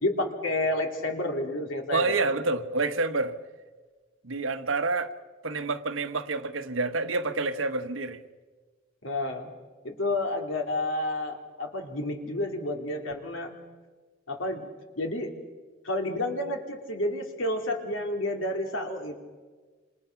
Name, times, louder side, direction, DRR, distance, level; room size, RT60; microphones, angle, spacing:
voice 1, 0.0-2.2 9.0-9.5 9.8-13.5 14.3-14.7 15.0-15.3 15.8-19.2, left 1 dB, 80° left, 2.9 m, -30 dB
voice 2, 1.9-3.3 4.2-5.1 5.4-8.2, right 3 dB, 85° right, 1.3 m, -28 dB
27.5 x 27.0 x 5.9 m
head